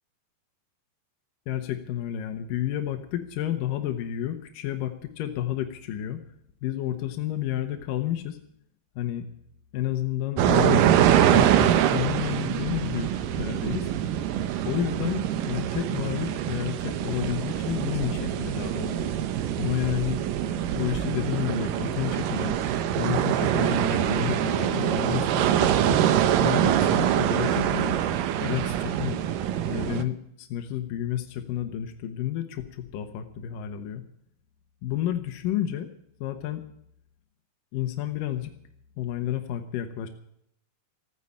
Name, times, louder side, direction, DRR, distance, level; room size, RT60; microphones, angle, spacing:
voice 1, 1.5-6.2 6.6-8.4 9.0-9.3 9.7-10.8 11.3-13.1 13.4-13.9 14.6-19.1 19.6-20.2 20.8-22.6 22.9-26.0 26.4-28.0 28.4-29.2 29.7-34.0 34.8-35.9 36.2-36.6 37.7-38.5 39.0-40.1, left 11 dB, 75° left, 6 dB, 2.0 m, -30 dB
sound 1, 10.4-30.0, right 10 dB, 90° right, 1.9 m, -24 dB
15.5 x 9.7 x 8.5 m, 0.72 s
omnidirectional pair, 5.2 m